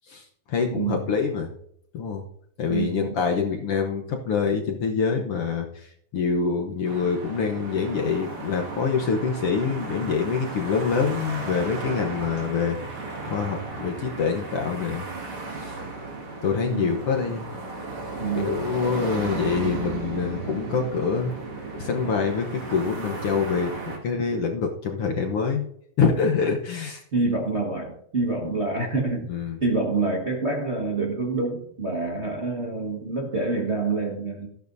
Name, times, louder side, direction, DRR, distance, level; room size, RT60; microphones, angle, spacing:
voice 1, 0.1-1.5 1.9-2.2 2.6-12.8 13.3-15.1 15.6-15.8 16.4-17.5 18.4-21.3 21.8-25.7 26.0-27.0 29.3-29.6, left 5 dB, 60° left, 2 dB, 1.7 m, -25 dB
voice 2, 0.7-1.1 2.7-3.2 16.5-16.9 18.2-18.6 27.1-29.3 29.6-34.5, right 3 dB, 35° right, -1 dB, 1.2 m, -27 dB
sound 1, 6.8-24.0, right 3 dB, 50° right, 2.8 m, -35 dB
14.0 x 11.5 x 2.7 m, 0.68 s
omnidirectional pair, 3.3 m